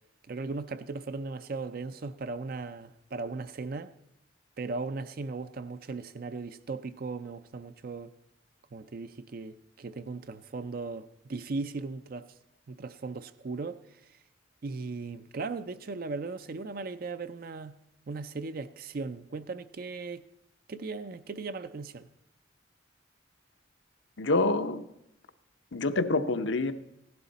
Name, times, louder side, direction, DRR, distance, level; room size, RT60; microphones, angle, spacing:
voice 1, 0.3-3.9 4.6-8.1 8.7-12.3 12.7-13.8 14.6-17.7 18.1-20.2 20.7-22.1, right 3 dB, 50° right, 0.4 m, -37 dB
voice 2, 24.2-24.8 25.7-26.7, left 2 dB, 70° left, 0.8 m, -26 dB
16.0 x 11.0 x 4.1 m
head